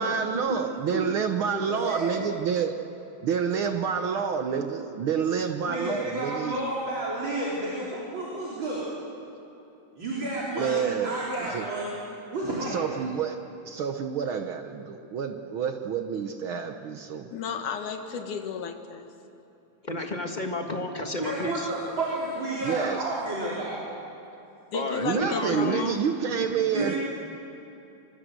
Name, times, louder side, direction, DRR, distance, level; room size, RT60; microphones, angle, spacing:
voice 1, 0.0-2.7 3.2-6.5 10.5-11.7 12.6-13.4 13.6-17.3 22.6-23.1 25.0-27.0, right 7 dB, 70° right, 6 dB, 1.2 m, -28 dB
voice 2, 1.7-2.3 5.6-8.8 10.0-12.0 12.3-12.9 21.2-23.8 26.7-27.0, right 2 dB, 40° right, -5 dB, 4.5 m, -31 dB
voice 3, 17.3-19.1 24.7-26.0, left 6 dB, 80° left, 6 dB, 3.0 m, -33 dB
voice 4, 19.8-21.7 24.7-26.0 26.4-26.5 26.8-27.0, left 1 dB, 25° left, 3 dB, 0.9 m, -31 dB
25.0 x 23.0 x 8.0 m, 2.9 s
omnidirectional pair, 3.5 m